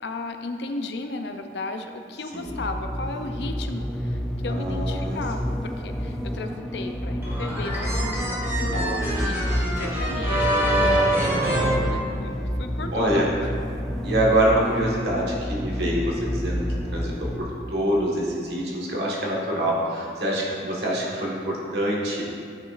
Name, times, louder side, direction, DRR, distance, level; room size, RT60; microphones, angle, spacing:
voice 1, 0.0-13.2 15.7-16.0, left 3 dB, 75° left, 6 dB, 0.5 m, -35 dB
sound 1, 2.5-17.4, equal, 5° left, 0.3 m, -29 dB
voice 2, 4.5-5.2 8.5-9.3 12.9-13.3 14.0-22.2, right 1 dB, 65° right, -4 dB, 1.4 m, -25 dB
sound 2, 7.2-12.6, right 1 dB, 15° right, 1.3 m, -25 dB
9.6 x 5.9 x 2.5 m, 2.3 s
head